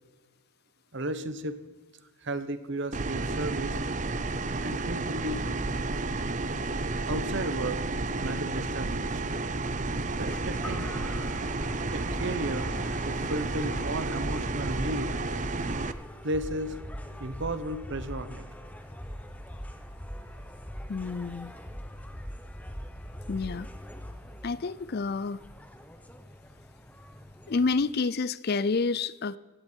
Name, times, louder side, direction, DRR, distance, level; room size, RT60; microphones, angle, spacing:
voice 1, 0.9-1.6 2.2-3.8 4.6-5.4 7.0-7.8 8.2-9.2 10.2-10.9 11.9-12.7 13.0-15.1 16.2-16.8 17.2-18.5, right 1 dB, 50° right, 11 dB, 1.1 m, -34 dB
sound 1, 2.9-15.9, right 3 dB, 35° right, 0.6 m, -31 dB
sound 2, 10.3-27.8, equal, 5° left, 1.0 m, -42 dB
voice 2, 20.9-21.5 23.3-23.7 24.4-25.4 27.5-29.4, left 4 dB, 45° left, 18 dB, 0.4 m, -29 dB
16.5 x 16.5 x 4.6 m, 1.3 s
head